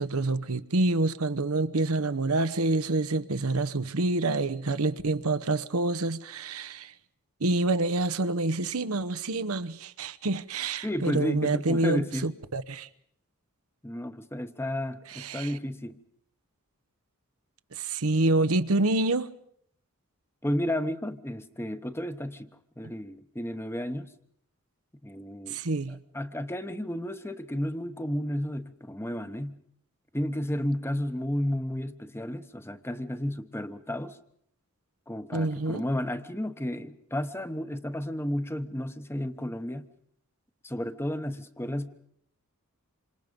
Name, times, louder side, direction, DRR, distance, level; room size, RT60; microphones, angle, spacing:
voice 1, 0.0-6.9 7.4-12.9 15.1-15.5 17.7-19.3 25.5-26.0 35.3-35.8, right 2 dB, 80° right, 1.0 m, -27 dB
voice 2, 10.8-12.3 13.8-16.0 20.4-22.5 22.8-24.1 25.0-25.6 25.9-29.6 30.1-34.2 35.1-39.9 40.6-42.0, equal, 10° left, 1.0 m, -32 dB
27.5 x 26.0 x 5.3 m
head